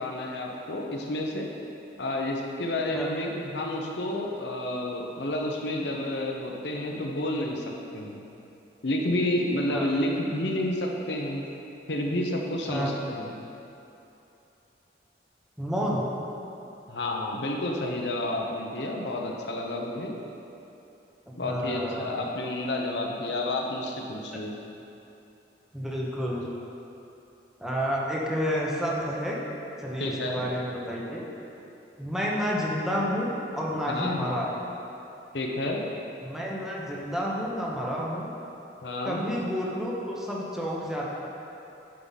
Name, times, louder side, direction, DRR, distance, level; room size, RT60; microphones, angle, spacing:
voice 1, 0.0-1.5 2.0-7.6 7.9-8.3 8.8-11.4 11.9-13.4 16.9-20.2 21.3-24.6 30.0-30.5 33.9-34.3 35.3-35.8 38.8-39.2, left 1 dB, 80° left, 0 dB, 1.0 m, -30 dB
voice 2, 15.6-16.1 21.3-22.1 25.7-26.5 27.6-29.4 29.8-31.2 32.0-34.5 36.2-38.3 39.0-41.1, equal, 5° right, -4 dB, 1.0 m, -30 dB
9.5 x 5.8 x 4.1 m, 2.9 s
head